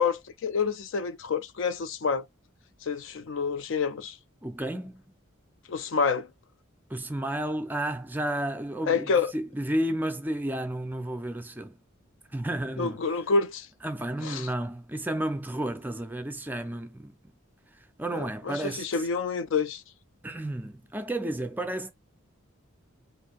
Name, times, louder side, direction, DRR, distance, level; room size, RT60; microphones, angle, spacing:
voice 1, 0.0-2.2 2.9-4.1 5.7-6.3 8.9-9.3 12.8-13.7 14.2-14.5 18.2-19.8, left 5 dB, 60° left, 0.4 m, -28 dB
voice 2, 4.4-5.0 6.9-11.8 12.3-13.1 13.8-17.1 18.0-19.1 20.2-21.9, right 1 dB, 10° right, 0.4 m, -32 dB
2.7 x 2.5 x 3.8 m
head